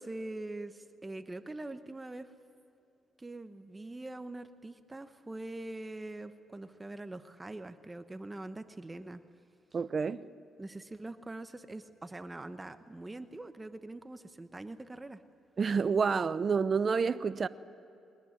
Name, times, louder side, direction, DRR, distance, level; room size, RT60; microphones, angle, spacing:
voice 1, 0.0-2.3 3.2-9.2 10.6-15.2, right 2 dB, 15° right, 1.0 m, -43 dB
voice 2, 9.7-10.3 15.6-17.5, right 5 dB, 40° right, 0.7 m, -29 dB
22.5 x 19.0 x 9.7 m
cardioid pair, 90°, 0 cm